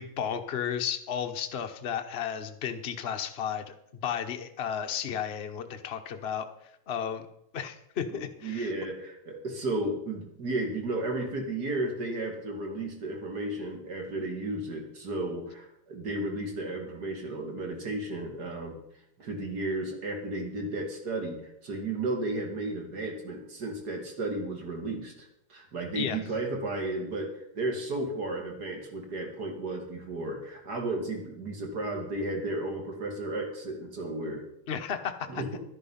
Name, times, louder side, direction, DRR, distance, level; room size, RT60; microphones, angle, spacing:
voice 1, 0.0-3.7 4.0-6.5 6.9-7.2 7.5-8.7 25.9-26.2 34.7-35.6, left 8 dB, 55° left, 6 dB, 0.7 m, -33 dB
voice 2, 8.1-18.8 19.2-34.5 35.3-35.5, right 2 dB, 45° right, 3 dB, 2.7 m, -33 dB
11.5 x 10.5 x 5.7 m, 0.76 s
omnidirectional pair, 2.4 m